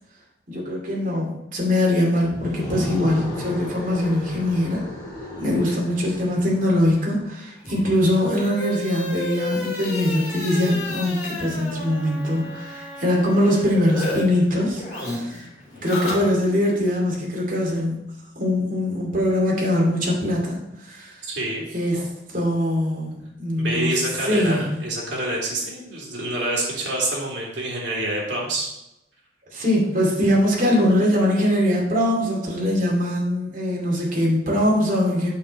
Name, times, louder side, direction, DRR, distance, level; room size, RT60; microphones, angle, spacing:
voice 1, 0.5-4.9 5.4-15.5 15.8-18.1 18.4-21.1 21.7-22.0 22.3-23.9 24.3-24.8 29.5-35.3, left 1 dB, 45° right, -3 dB, 2.6 m, -22 dB
sound 1, 2.2-7.2, left 1 dB, 20° left, 3.2 m, -34 dB
sound 2, 7.6-14.2 14.5-16.7, left 1 dB, 50° left, 3.4 m, -32 dB
voice 2, 21.2-21.6 23.6-28.7, right 1 dB, 75° right, -3 dB, 3.2 m, -27 dB
8.3 x 6.5 x 4.2 m, 0.90 s
head